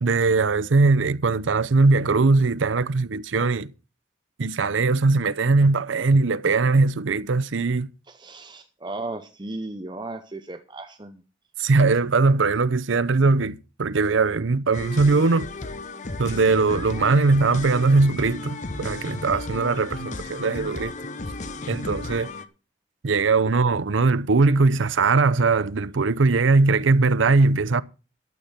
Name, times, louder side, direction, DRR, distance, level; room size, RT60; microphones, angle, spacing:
voice 1, 0.0-3.7 4.4-7.9 11.6-15.5 16.2-21.0 21.7-22.3 23.0-27.8, right 3 dB, 85° right, 0.6 m, -20 dB
voice 2, 8.1-11.2, right 2 dB, 25° right, 0.8 m, -35 dB
sound 1, 14.7-22.4, left 2 dB, 40° left, 0.9 m, -34 dB
12.0 x 8.3 x 5.7 m
head